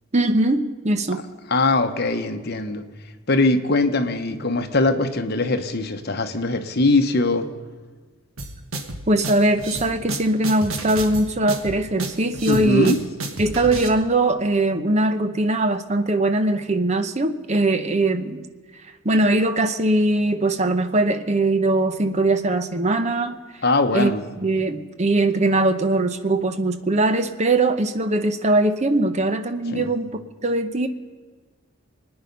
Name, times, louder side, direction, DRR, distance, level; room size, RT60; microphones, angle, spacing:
voice 1, 0.1-1.2 9.1-12.9 13.4-18.5 19.0-23.4 23.9-24.1 24.4-30.9, right 2 dB, 30° right, 9 dB, 0.8 m, -21 dB
voice 2, 1.5-2.8 3.3-7.5 12.5-13.0 23.6-24.2 29.7-29.9, left 2 dB, 50° left, 7 dB, 1.0 m, -21 dB
sound 1, 8.4-13.9, right 2 dB, 75° right, 1.4 m, -31 dB
24.5 x 9.7 x 5.4 m, 1.4 s
head